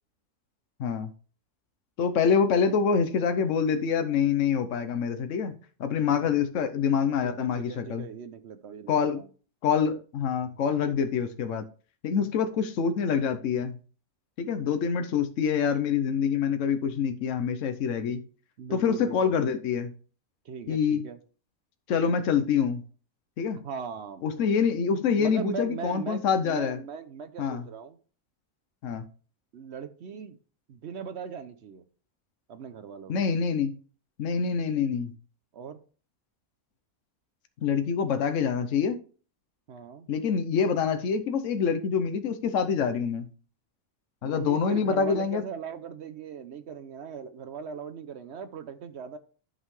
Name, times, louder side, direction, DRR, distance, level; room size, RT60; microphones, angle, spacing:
voice 1, 0.8-1.1 2.0-8.1 8.9-9.2 9.6-11.7 12.0-13.8 14.4-18.2 18.7-19.9 20.7-21.1 21.9-22.8 23.4-23.6 24.2-26.8 27.4-27.7 28.8-29.1 33.1-33.7 34.2-35.1 37.6-39.0 40.1-43.3 44.2-45.4, left 6 dB, 65° left, 8 dB, 1.1 m, -26 dB
voice 2, 7.2-9.3 18.6-19.3 20.4-21.2 23.6-24.2 25.2-28.0 29.5-30.4 30.7-31.8 32.5-33.2 35.5-35.8 39.7-40.1 44.2-49.2, right 6 dB, 60° right, 10 dB, 0.8 m, -39 dB
11.0 x 5.4 x 3.2 m, 0.39 s
omnidirectional pair, 1.5 m